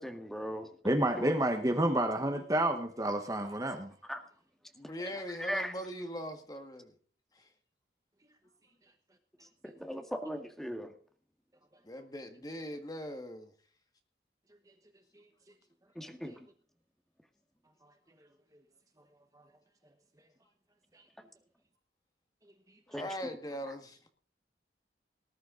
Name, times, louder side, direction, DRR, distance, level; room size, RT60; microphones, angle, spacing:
voice 1, 0.0-1.3 4.1-4.2 5.4-5.8 9.6-10.9 16.0-16.5 22.9-23.1, equal, ahead, 1.8 m, -39 dB
voice 2, 0.8-3.9 20.9-21.0, right 1 dB, 20° right, 1.2 m, -29 dB
voice 3, 4.8-6.9 7.3-7.5 11.8-13.5 22.9-24.0, equal, 20° left, 1.8 m, -41 dB
19.5 x 11.5 x 3.9 m
head